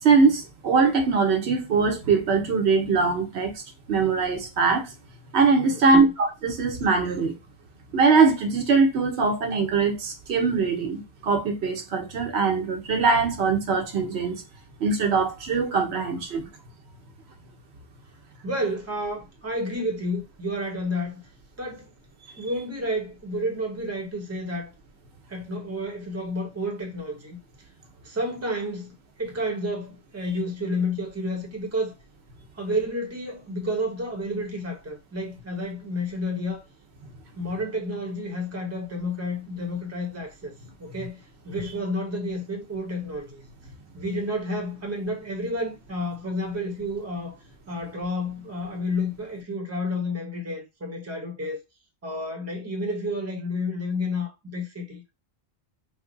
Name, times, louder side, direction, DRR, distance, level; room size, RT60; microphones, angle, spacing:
voice 1, 0.0-3.5 3.9-4.9 5.3-7.3 7.9-14.4 14.8-16.4, right 4 dB, 85° right, 1.0 m, -22 dB
voice 2, 5.7-6.0 18.4-21.2 21.6-21.9 22.4-24.7 25.3-27.4 28.0-32.0 32.6-36.6 37.4-43.5 43.9-47.4 47.7-51.6 52.0-55.1, left 1 dB, 15° right, 0.7 m, -30 dB
3.1 x 2.1 x 3.8 m
omnidirectional pair, 1.1 m